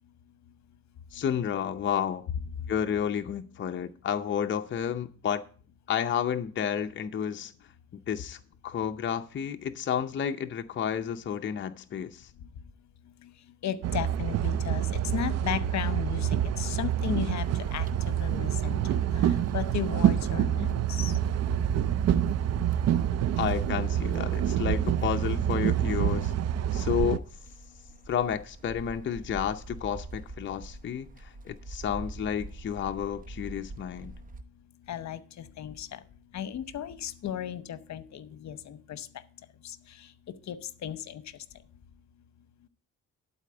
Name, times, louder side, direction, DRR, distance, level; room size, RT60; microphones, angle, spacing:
voice 1, 1.1-2.2 2.7-5.4 5.9-7.5 8.1-12.3 23.4-26.3 26.7-27.2 28.1-34.1, left 8 dB, 40° left, 6 dB, 0.6 m, -31 dB
voice 2, 13.6-21.2 34.9-36.0 36.3-39.1 39.6-40.1 40.5-40.6 40.8-41.2, left 10 dB, 65° left, 14 dB, 0.9 m, -35 dB
sound 1, 13.8-27.2, right 10 dB, 60° right, 0.5 m, -27 dB
sound 2, 17.4-34.4, right 2 dB, 30° right, 0.8 m, -46 dB
12.0 x 4.2 x 7.7 m, 0.41 s
cardioid pair, 95°, 30 cm